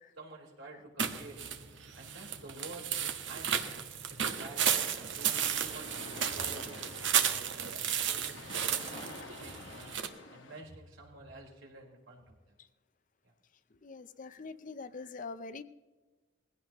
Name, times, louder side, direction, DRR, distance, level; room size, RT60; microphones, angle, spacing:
voice 1, 0.2-1.5 2.0-3.7 4.1-4.7 5.2-9.9 10.3-12.5 13.2-13.3, right 2 dB, 90° right, -1 dB, 4.4 m, -50 dB
sound 1, 1.0-10.1, right 8 dB, 70° right, 1.2 m, -33 dB
sound 2, 5.4-10.6, left 3 dB, 75° left, 1.7 m, -49 dB
voice 2, 13.8-15.6, left 4 dB, 45° left, 12 dB, 0.6 m, -43 dB
20.5 x 16.5 x 3.0 m, 1.3 s
head